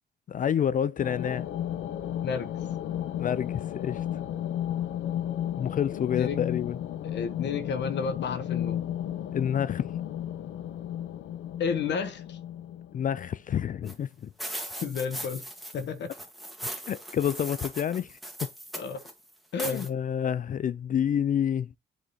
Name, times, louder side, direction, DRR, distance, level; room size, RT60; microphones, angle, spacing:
voice 1, 0.3-1.5 3.2-4.0 5.6-6.8 9.3-9.8 12.9-14.3 16.9-18.2 19.6-21.7, left 9 dB, 40° left, 0.4 m, -28 dB
sound 1, 1.0-13.5, left 11 dB, 80° left, 0.8 m, -34 dB
voice 2, 2.2-2.5 6.0-6.4 7.0-8.8 11.6-12.4 14.8-15.4 15.7-16.1 18.7-19.0 19.5-19.9, left 6 dB, 65° left, 1.1 m, -31 dB
sound 2, 13.9-14.0 14.4-15.8 16.1-19.1 19.6-19.9, right 1 dB, ahead, 1.9 m, -38 dB
8.1 x 3.7 x 4.1 m
cardioid pair, 90°, 20 cm